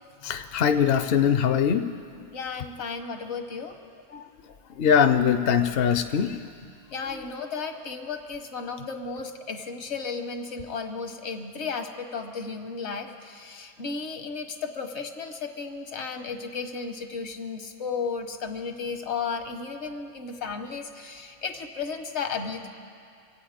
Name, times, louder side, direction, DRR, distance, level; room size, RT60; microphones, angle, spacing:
voice 1, 0.2-2.0 4.1-4.2 4.8-6.4, left 7 dB, 65° left, 8 dB, 0.7 m, -22 dB
voice 2, 2.3-3.8 6.9-22.7, left 5 dB, 80° left, 6 dB, 1.4 m, -34 dB
25.0 x 8.6 x 5.0 m, 2.4 s
omnidirectional pair, 1.1 m